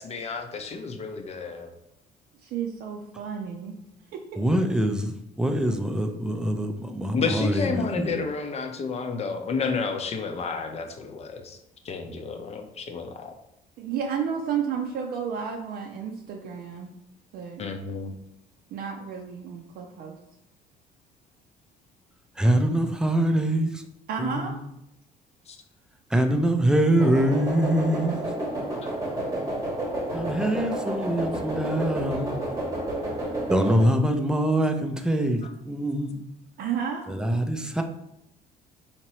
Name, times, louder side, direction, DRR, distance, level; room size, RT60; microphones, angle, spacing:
voice 1, 0.0-1.7 7.1-11.6 11.8-13.3 17.6-18.1 25.5-25.6 35.4-35.5, left 4 dB, 40° left, 5 dB, 0.6 m, -31 dB
voice 2, 2.4-3.7 4.1-4.2 13.8-16.9 17.3-17.6 18.7-20.2 24.1-24.6 36.6-37.1, right 7 dB, 65° right, 0 dB, 0.5 m, -31 dB
voice 3, 4.4-8.2 22.4-23.8 24.2-24.6 26.1-28.2 30.1-32.5 33.5-36.3 37.1-37.8, right 1 dB, 5° right, 5 dB, 0.4 m, -24 dB
sound 1, 27.0-33.9, right 1 dB, 20° right, 1.0 m, -30 dB
4.4 x 2.9 x 3.0 m, 0.81 s
cardioid pair, 110°, 17 cm